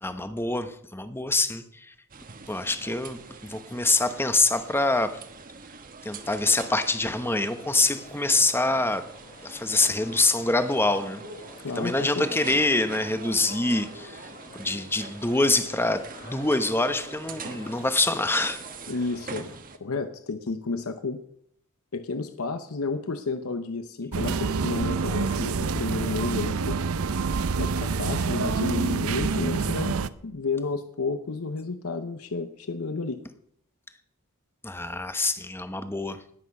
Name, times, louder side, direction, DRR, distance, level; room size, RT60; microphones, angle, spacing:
voice 1, 0.0-1.9 2.5-5.2 6.0-9.0 9.4-11.2 11.8-18.6 34.6-36.3, left 2 dB, 10° left, 10 dB, 0.9 m, -25 dB
sound 1, 2.1-19.8, right 4 dB, 40° right, 1.2 m, -44 dB
sound 2, 6.5-19.6, left 2 dB, 50° left, 2.7 m, -48 dB
voice 2, 11.6-12.3 18.9-19.5 19.8-21.2 21.9-26.8 27.6-30.0 30.2-33.2, left 3 dB, 70° left, 9 dB, 0.8 m, -31 dB
sound 3, 24.1-30.1, right 4 dB, 70° right, 0.6 m, -27 dB
19.5 x 8.3 x 5.4 m, 0.68 s
head